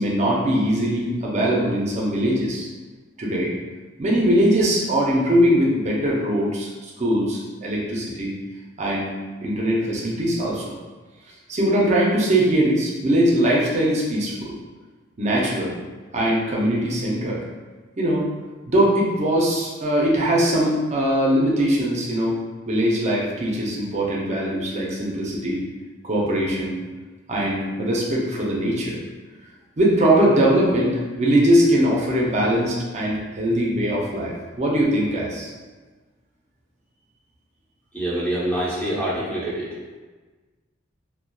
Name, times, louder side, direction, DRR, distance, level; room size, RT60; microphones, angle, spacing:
voice 1, 0.0-2.7 3.2-3.5 4.0-8.3 8.8-9.1 9.4-10.7 11.5-14.5 15.2-15.7 16.1-17.4 18.0-18.3 18.7-22.4 22.7-25.6 26.0-26.8 27.3-29.0 29.8-35.5, right 1 dB, 35° right, -4 dB, 0.5 m, -21 dB
voice 2, 37.9-39.7, right 1 dB, 10° left, -9 dB, 0.7 m, -25 dB
2.6 x 2.1 x 2.2 m, 1.3 s
head